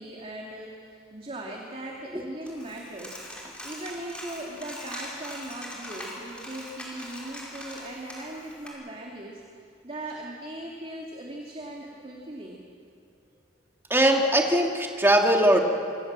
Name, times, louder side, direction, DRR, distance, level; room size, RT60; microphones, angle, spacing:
voice 1, 0.0-3.2 3.6-9.4 9.8-12.6, right 1 dB, 30° right, -1 dB, 2.5 m, -39 dB
Coin (dropping), 2.5-8.7, left 1 dB, 5° left, 5.1 m, -41 dB
voice 2, 13.9-15.6, right 1 dB, 10° right, 2 dB, 2.4 m, -20 dB
26.0 x 24.5 x 7.5 m, 2.4 s
head